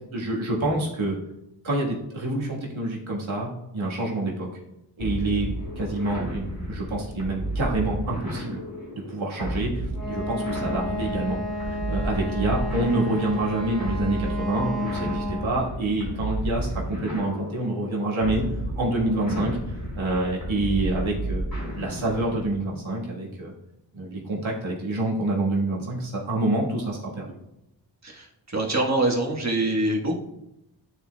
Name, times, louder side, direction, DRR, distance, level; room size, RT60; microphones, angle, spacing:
voice 1, 0.1-1.2 1.6-4.5 5.0-8.6 8.9-11.4 11.7-18.4 18.8-19.6 19.9-21.5 21.7-23.5 23.9-27.3, right 2 dB, 90° right, -3 dB, 1.6 m, -27 dB
sound 1, 5.0-22.6, right 1 dB, 50° left, 2.4 m, -32 dB
Wind instrument woodwind instrument, 9.9-15.6, left 1 dB, ahead, 1.2 m, -32 dB
voice 2, 28.5-30.2, right 2 dB, 35° right, -1 dB, 1.4 m, -24 dB
11.5 x 4.2 x 2.3 m, 0.87 s
wide cardioid pair, 60°, 46 cm